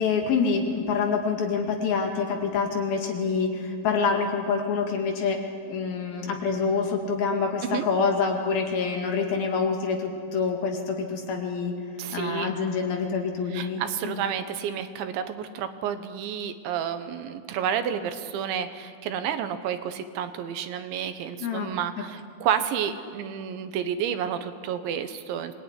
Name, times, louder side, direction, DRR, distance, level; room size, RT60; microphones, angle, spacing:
voice 1, 0.0-11.7 12.1-14.3 21.4-21.7, left 5 dB, 60° left, 3 dB, 3.5 m, -26 dB
voice 2, 12.0-12.5 13.5-25.5, right 8 dB, 75° right, 9 dB, 3.3 m, -30 dB
25.5 x 20.5 x 9.8 m, 2.1 s
omnidirectional pair, 5.5 m